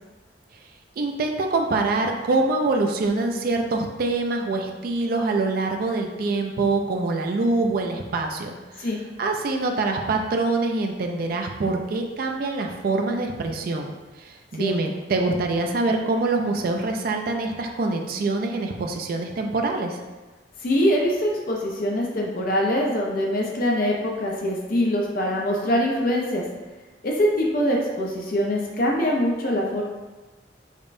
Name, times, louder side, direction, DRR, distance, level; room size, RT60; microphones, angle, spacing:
voice 1, 1.0-8.9 9.2-13.9 14.2-20.0, right 3 dB, 55° right, 3 dB, 0.4 m, -25 dB
voice 2, 20.6-26.4 27.0-29.8, equal, 55° left, -2 dB, 0.5 m, -23 dB
5.2 x 2.1 x 2.5 m, 1.2 s
head